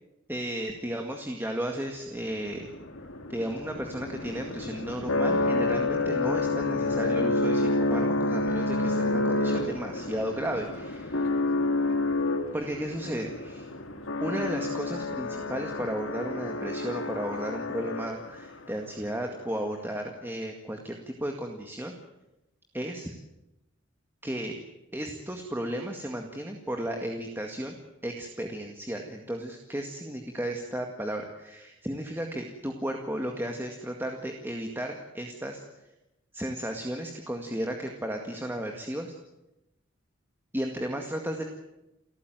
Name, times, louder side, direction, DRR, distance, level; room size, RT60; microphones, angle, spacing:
voice 1, 0.3-2.7 3.3-11.3 12.5-13.7 14.2-21.9 22.7-23.1 24.2-24.6 24.9-27.8 28.0-35.6 36.3-39.1 40.5-41.4, right 1 dB, 10° right, 3 dB, 2.0 m, -34 dB
sound 1, 2.3-18.5, left 2 dB, 85° left, 2.1 m, -29 dB
29.5 x 14.5 x 9.2 m, 0.95 s
head